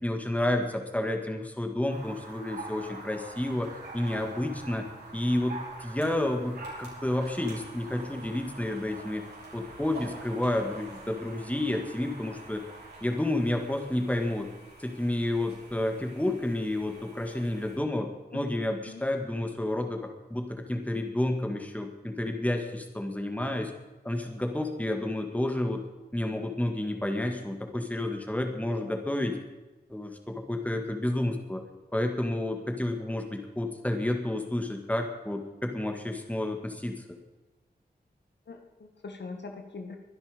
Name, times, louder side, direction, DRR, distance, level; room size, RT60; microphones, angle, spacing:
voice 1, 0.0-4.9 5.1-9.2 9.5-12.6 13.0-14.5 14.8-18.1 18.3-23.7 24.0-25.8 26.1-29.4 29.9-31.6 31.9-37.0, left 1 dB, 10° left, 4 dB, 2.1 m, -30 dB
sound 1, 1.9-17.8, right 2 dB, 75° right, 5.6 m, -45 dB
voice 2, 38.5-40.0, left 4 dB, 90° left, 4 dB, 1.8 m, -42 dB
23.5 x 10.5 x 5.3 m, 1.1 s
wide cardioid pair, 100°, 17 cm